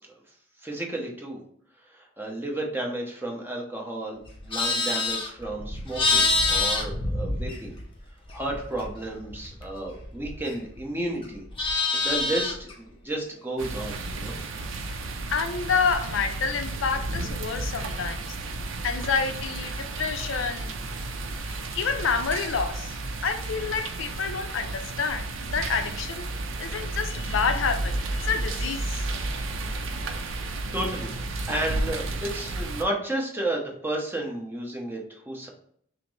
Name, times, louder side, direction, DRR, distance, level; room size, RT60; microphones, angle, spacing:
voice 1, 0.6-1.4 2.0-7.7 8.3-11.4 11.9-14.4 30.1-31.1 31.5-35.5, right 1 dB, 10° right, 0.8 m, -32 dB
Livestock farm animals working animals, 4.3-8.0 8.3-10.8 11.1-12.7, left 3 dB, 25° left, 0.7 m, -27 dB
sound 1, 13.6-32.8, right 2 dB, 70° right, 0.5 m, -32 dB
voice 2, 15.3-18.4 18.8-20.8 21.5-22.9 23.2-26.3 26.6-29.1, left 5 dB, 70° left, 0.4 m, -28 dB
5.7 x 2.0 x 3.2 m
head